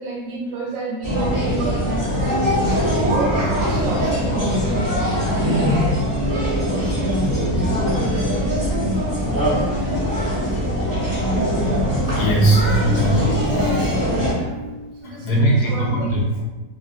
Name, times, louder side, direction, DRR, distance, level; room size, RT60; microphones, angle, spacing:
voice 1, 0.0-2.1 2.6-6.0 6.3-8.2 12.5-12.8 14.3-14.6 15.0-16.4, right 2 dB, 90° right, -2 dB, 1.5 m, -30 dB
sound 1, 1.0-14.3, equal, 15° right, 0.9 m, -21 dB
sound 2, 6.0-11.4 12.8-15.0, equal, 55° left, 0.9 m, -36 dB
voice 2, 12.1-14.0 15.0-16.2, right 1 dB, 70° left, -2 dB, 1.1 m, -20 dB
2.9 x 2.7 x 2.6 m, 1.2 s
omnidirectional pair, 2.0 m